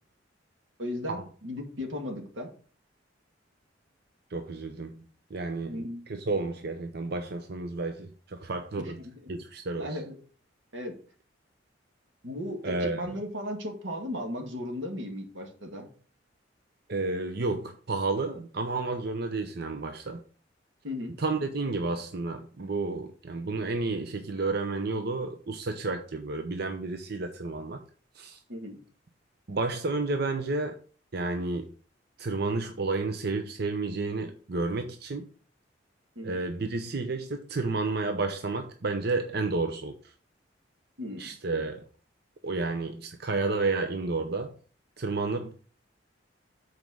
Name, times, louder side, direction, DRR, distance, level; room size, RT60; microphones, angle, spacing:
voice 1, 0.8-2.5 5.6-6.1 8.8-9.1 9.8-10.2 10.7-11.0 12.2-15.9 20.8-21.1 28.5-28.8 36.2-36.4 41.0-41.3 45.3-45.5, left 1 dB, 90° right, 2.0 m, -36 dB
voice 2, 4.3-9.0 9.3-10.0 12.6-13.1 16.9-20.2 21.2-27.8 28.1-28.4 29.5-30.8 31.1-31.7 32.2-35.3 36.2-40.1 41.2-41.8 42.4-44.5 45.0-45.5, right 3 dB, 60° right, 0.7 m, -31 dB
7.2 x 4.7 x 6.2 m
head